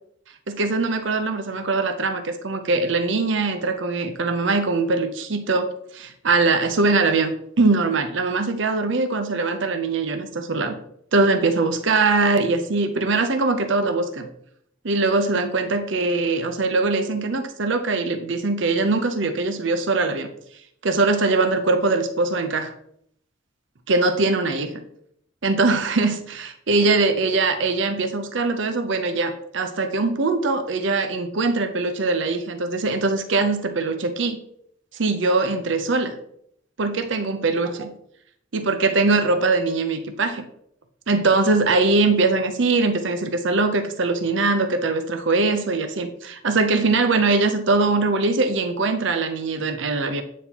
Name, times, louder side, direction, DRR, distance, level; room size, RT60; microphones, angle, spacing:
voice 1, 0.5-10.7 11.1-14.3 14.8-20.3 20.8-22.7 23.9-24.8 25.4-34.4 34.9-36.2 36.8-37.9 38.5-40.4 41.1-50.2, right 3 dB, 65° right, 7 dB, 0.7 m, -22 dB
9.1 x 4.2 x 2.9 m, 0.70 s
head